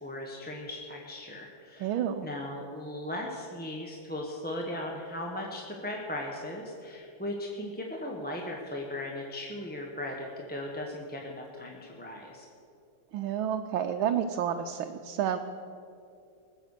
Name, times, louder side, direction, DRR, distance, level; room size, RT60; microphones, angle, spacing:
voice 1, 0.0-12.5, left 1 dB, 5° left, -1 dB, 0.9 m, -38 dB
voice 2, 1.8-2.3 13.1-15.4, right 9 dB, 90° right, 5 dB, 1.5 m, -30 dB
20.0 x 8.1 x 6.6 m, 2.6 s
omnidirectional pair, 2.1 m